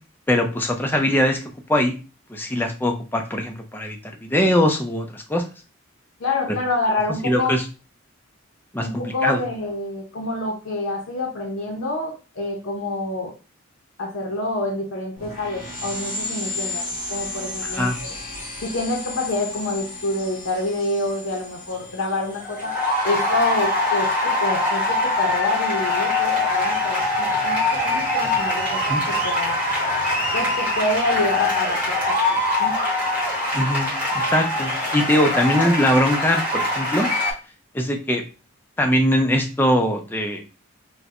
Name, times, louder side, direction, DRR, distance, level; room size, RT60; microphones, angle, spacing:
voice 1, 0.3-1.4 1.7-1.9 2.3-5.4 7.2-7.6 8.7-9.4 17.6-18.0 28.9-29.0 33.5-37.1 37.7-38.2 38.8-40.4, equal, 10° left, 3 dB, 0.4 m, -21 dB
voice 2, 6.2-7.5 8.8-13.3 14.0-17.9 18.6-22.7 23.0-28.8 29.1-29.6 30.3-32.1 32.6-32.8, left 2 dB, 75° left, 0 dB, 0.7 m, -27 dB
sound 1, 15.2-25.3, left 2 dB, 40° left, 1.6 m, -35 dB
sound 2, 22.3-37.3, left 2 dB, 5° right, 1.0 m, -23 dB
4.3 x 2.1 x 2.4 m, 0.33 s
head